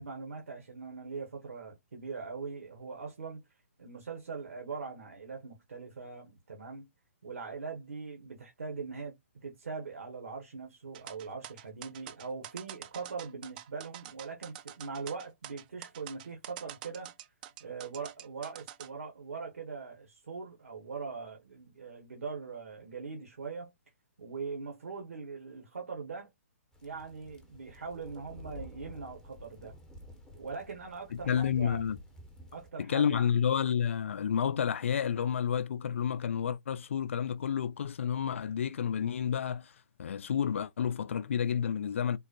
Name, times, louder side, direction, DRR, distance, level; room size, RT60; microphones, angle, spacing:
voice 1, 0.0-3.4 3.8-6.9 7.2-9.2 9.4-17.1 17.6-23.7 24.2-26.3 26.8-29.7 30.3-31.8 32.5-33.3, right 4 dB, 70° right, 1.0 m, -41 dB
sound 1, 10.9-18.9, right 12 dB, 35° right, 0.4 m, -46 dB
sound 2, 26.7-32.7, left 1 dB, 10° left, 0.8 m, -51 dB
voice 2, 31.1-32.0 32.8-39.7 40.0-42.2, left 8 dB, 55° left, 0.4 m, -30 dB
3.7 x 2.1 x 2.7 m
figure-of-eight pair, 125°, 8 cm